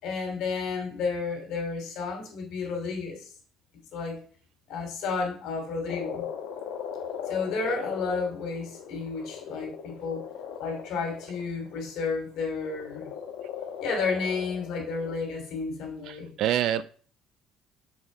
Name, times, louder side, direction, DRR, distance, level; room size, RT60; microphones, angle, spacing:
voice 1, 0.0-3.3 3.9-4.2 4.7-6.3 7.3-10.3 10.6-13.1 13.8-16.3, left 4 dB, 70° left, 3.0 m, -32 dB
Frog, 5.9-11.8 12.6-15.2, left 8 dB, 90° left, 1.4 m, -38 dB
voice 2, 16.1-16.8, right 11 dB, 65° right, 0.4 m, -26 dB
6.8 x 4.4 x 5.5 m
cardioid pair, 120°, 0 cm